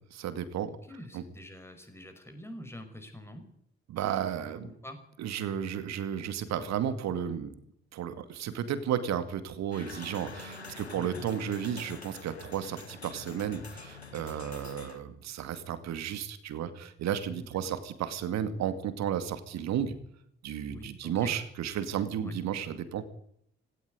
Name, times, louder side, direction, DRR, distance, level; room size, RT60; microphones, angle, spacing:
voice 1, 0.1-0.7 1.1-1.2 3.9-4.7 5.2-7.5 7.9-20.0 20.4-23.1, right 9 dB, 55° right, 12 dB, 2.3 m, -33 dB
voice 2, 0.8-3.5 4.6-5.0 10.9-11.3 17.4-17.8 20.7-21.3 22.2-22.3, left 1 dB, 10° left, 6 dB, 5.5 m, -46 dB
sound 1, 9.7-15.0, left 4 dB, 90° left, 1.1 m, -46 dB
17.5 x 17.5 x 9.6 m, 0.70 s
figure-of-eight pair, 40°, 31 cm